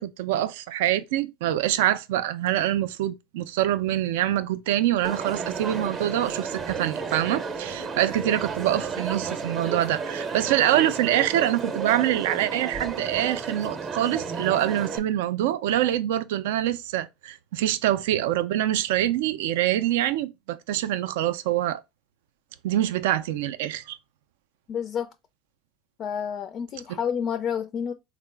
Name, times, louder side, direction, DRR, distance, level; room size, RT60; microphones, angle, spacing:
voice 1, 0.0-21.8 22.6-24.0 26.9-27.0, right 12 dB, 85° right, 0.3 m, -25 dB
Crowd, 5.0-15.0, right 5 dB, 35° right, 0.6 m, -32 dB
voice 2, 24.7-25.1 26.0-27.9, left 7 dB, 40° left, 0.3 m, -29 dB
3.7 x 2.0 x 3.2 m
supercardioid pair, 125°, 0 cm